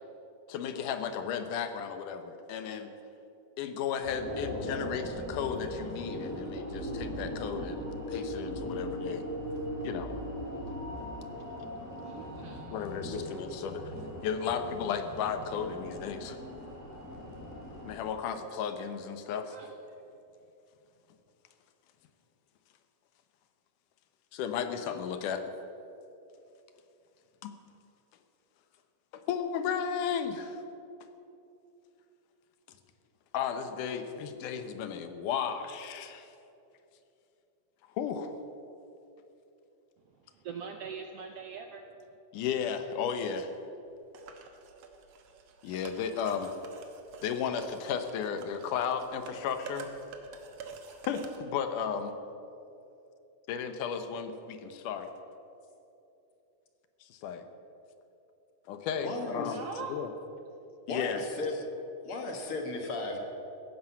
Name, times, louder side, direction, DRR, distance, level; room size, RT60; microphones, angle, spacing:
voice 1, 0.5-2.9 3.6-9.3 9.8-10.2 12.7-13.9 14.2-16.4 17.9-19.6 24.3-25.4 27.4-27.6 29.1-30.6 33.3-36.3 38.0-38.3 42.3-43.5 45.6-46.5 47.2-49.9 51.1-52.1 53.5-55.1 57.1-57.4 58.7-59.6 59.9-60.1 60.9-61.2, left 7 dB, 80° left, 8 dB, 2.5 m, -34 dB
sound 1, 4.0-18.0, equal, 5° left, 2.9 m, -39 dB
voice 2, 12.0-12.8 19.5-19.7 40.4-41.9 59.4-60.0, right 6 dB, 80° right, 5 dB, 1.4 m, -42 dB
sound 2, 44.1-51.4, right 4 dB, 60° right, 2.0 m, -48 dB
voice 3, 59.0-59.6 60.9-61.5 62.0-63.2, left 3 dB, 50° left, 3 dB, 2.0 m, -35 dB
15.5 x 10.5 x 7.1 m, 2.8 s
omnidirectional pair, 3.7 m